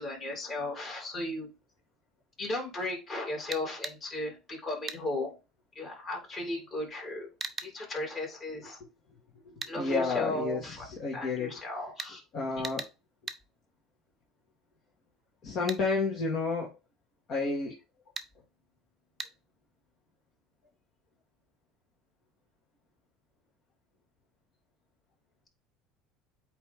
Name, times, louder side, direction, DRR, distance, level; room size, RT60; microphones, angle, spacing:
voice 1, 0.0-1.5 2.4-5.4 5.8-7.3 7.6-8.8 9.7-10.9 11.1-12.2, left 2 dB, 30° left, 3.9 m, -35 dB
sound 1, 3.5-4.0 4.9-5.0 7.4-7.7 9.6-9.8 12.0-12.1 12.6-12.9 13.3-13.4 15.7-15.8 18.2-18.3 19.2-19.3, right 4 dB, 25° right, 0.8 m, -38 dB
voice 2, 9.4-11.6 12.3-12.8 15.4-16.7 17.3-17.8, left 4 dB, 50° left, 2.1 m, -31 dB
8.4 x 3.3 x 3.6 m
supercardioid pair, 120°, 0 cm